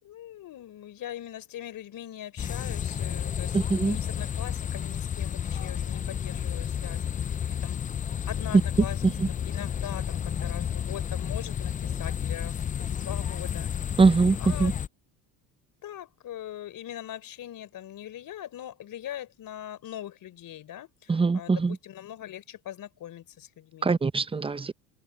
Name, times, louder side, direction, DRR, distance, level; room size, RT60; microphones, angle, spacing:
voice 1, 0.0-7.8 8.3-9.0 9.4-14.0 14.4-14.7 15.8-24.0, left 11 dB, 50° left, 4.0 m, -41 dB
sound 1, 2.4-14.9, left 8 dB, 20° left, 0.4 m, -31 dB
voice 2, 3.5-4.0 9.0-9.3 14.0-14.7 21.1-21.8 23.8-24.7, right 4 dB, 10° right, 0.8 m, -23 dB
hypercardioid pair, 80°, 44 cm